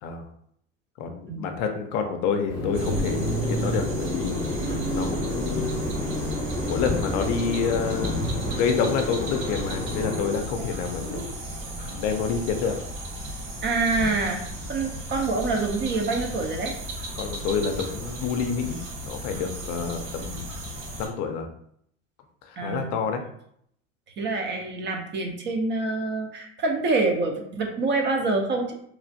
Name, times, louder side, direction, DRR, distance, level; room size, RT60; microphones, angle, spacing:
voice 1, 1.0-5.8 6.7-8.2 8.5-11.2 11.8-12.8 17.1-18.8 19.0-20.5 21.0-21.5 22.4-23.2, left 6 dB, 55° left, 5 dB, 0.5 m, -28 dB
sound 1, 2.5-10.3, left 1 dB, 10° left, 0.8 m, -29 dB
sound 2, 2.7-21.1, right 1 dB, 60° right, 1.4 m, -35 dB
sound 3, 4.5-7.8, right 4 dB, 85° right, 0.5 m, -40 dB
voice 2, 13.6-16.7 22.6-22.9 24.2-28.7, right 3 dB, 30° right, 2 dB, 0.5 m, -26 dB
3.1 x 2.4 x 2.6 m, 0.69 s
hypercardioid pair, 100°, 37 cm